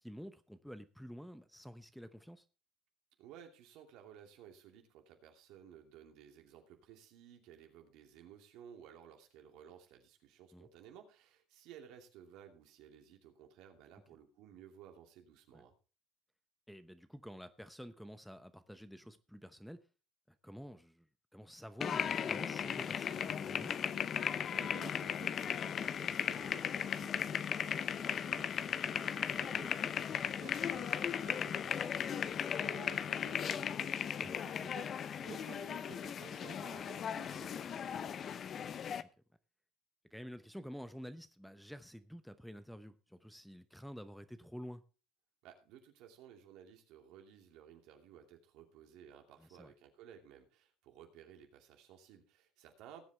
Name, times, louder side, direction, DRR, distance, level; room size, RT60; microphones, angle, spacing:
voice 1, 0.0-2.4 10.5-10.7 15.5-15.6 16.7-19.8 20.4-21.1 21.3-23.8 34.2-34.4 38.6-39.1 40.1-44.8 49.4-49.7, equal, ahead, 0.9 m, -50 dB
voice 2, 3.2-15.7 24.5-38.4 45.4-53.0, right 9 dB, 70° right, 2.7 m, -56 dB
sound 1, 21.8-39.0, left 8 dB, 45° left, 0.7 m, -37 dB
19.0 x 7.7 x 3.4 m
supercardioid pair, 85°, 0 cm